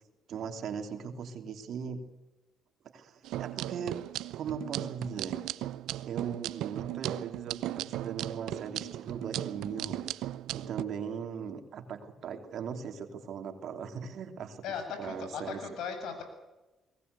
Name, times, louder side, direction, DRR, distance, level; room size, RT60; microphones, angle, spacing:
voice 1, 0.3-2.0 2.9-4.0 4.3-5.4 6.0-10.1 10.5-14.6 15.0-15.8, right 6 dB, 70° right, 6 dB, 3.0 m, -39 dB
sound 1, 3.2-10.8, right 14 dB, 90° right, 0.7 m, -37 dB
voice 2, 14.6-16.2, left 6 dB, 85° left, 6 dB, 7.1 m, -37 dB
23.0 x 19.0 x 8.3 m, 1.1 s
cardioid pair, 90°, 0 cm